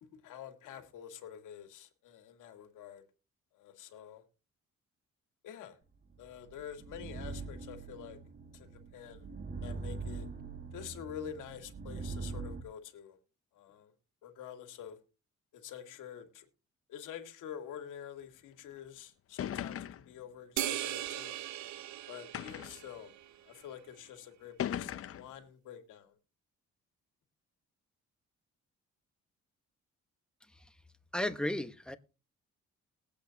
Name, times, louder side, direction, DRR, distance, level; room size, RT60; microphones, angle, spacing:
voice 1, 0.0-3.0 3.5-4.2 5.4-5.8 6.2-8.2 8.5-9.3 9.6-10.3 10.7-13.2 13.5-13.9 14.2-15.0 15.5-16.5 16.9-21.4 22.1-23.1 23.4-26.2, left 9 dB, 85° left, 2.0 m, -47 dB
sound 1, 6.2-12.6, right 4 dB, 30° right, 1.4 m, -43 dB
sound 2, 18.8-18.9 19.4-20.2 21.1-21.2 22.3-22.9 23.8-23.9 24.6-25.3, left 10 dB, 50° left, 0.6 m, -38 dB
sound 3, 20.6-23.3, right 13 dB, 70° right, 0.7 m, -38 dB
voice 2, 31.1-32.0, left 1 dB, 5° left, 1.1 m, -34 dB
20.0 x 8.4 x 2.8 m
cardioid pair, 90°, 30 cm